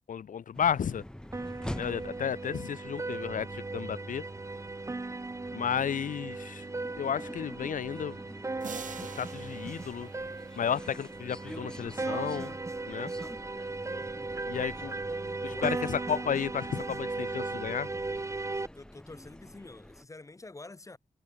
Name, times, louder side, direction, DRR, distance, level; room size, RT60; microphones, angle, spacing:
voice 1, 0.1-1.0 1.7-4.2 5.5-6.7 7.0-8.2 9.0-10.1 10.6-12.5 12.9-13.1 14.4-14.9 15.4-17.9, left 8 dB, 80° left, 0.7 m, -32 dB
sound 1, 0.5-20.0, left 1 dB, 5° left, 1.8 m, -47 dB
sound 2, 1.3-18.7, right 3 dB, 20° right, 0.8 m, -37 dB
sound 3, 8.6-11.1, right 6 dB, 75° right, 4.8 m, -46 dB
voice 2, 15.4-16.0 18.7-21.0, left 2 dB, 25° left, 2.8 m, -48 dB
wide cardioid pair, 145°, 13 cm